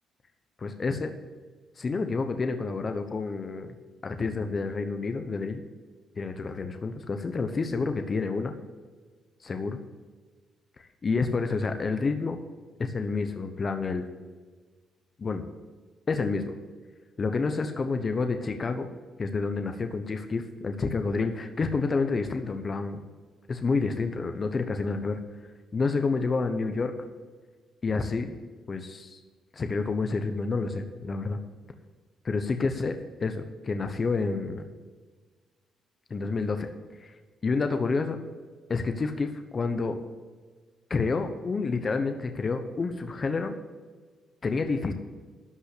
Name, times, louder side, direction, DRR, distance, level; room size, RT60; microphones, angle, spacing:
voice 1, 0.6-1.1 1.8-3.7 4.0-5.6 6.2-8.5 9.4-9.8 10.8-12.4 12.8-14.0 15.2-15.4 16.1-16.5 17.2-18.9 19.2-23.0 23.5-25.2 25.7-26.9 27.8-28.3 28.7-29.2 29.5-31.4 32.2-34.7 36.1-36.7 37.0-37.1 37.4-38.2 38.7-40.0 40.9-43.5 44.4-44.9, left 4 dB, 35° left, 7 dB, 1.0 m, -29 dB
12.5 x 5.5 x 8.4 m, 1.4 s
cardioid pair, 90°, 0 cm